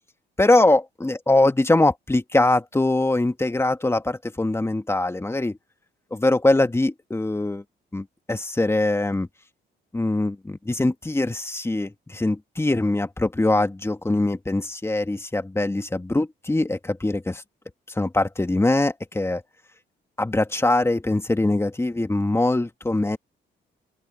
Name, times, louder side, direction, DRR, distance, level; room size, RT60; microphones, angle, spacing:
voice 1, 0.4-5.6 6.1-7.6 7.9-9.3 9.9-17.4 18.0-19.4 20.2-23.2, left 2 dB, 15° left, 2.2 m, -22 dB
open air
cardioid pair, 90°, 20 cm